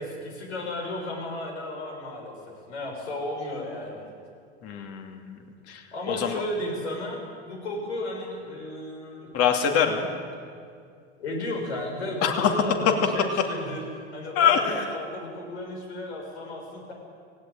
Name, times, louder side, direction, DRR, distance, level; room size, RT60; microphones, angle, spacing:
voice 1, 0.0-2.3 2.7-4.1 5.9-7.2 7.5-9.3 10.0-10.1 11.2-13.8 14.1-16.9, left 1 dB, 85° left, 0 dB, 6.9 m, -34 dB
voice 2, 4.6-5.4 5.7-5.8 6.1-6.3 9.3-10.1 12.2-12.5 14.4-14.9, left 7 dB, 45° left, 4 dB, 2.8 m, -24 dB
18.0 x 17.0 x 9.2 m, 2.2 s
hypercardioid pair, 105°, 33 cm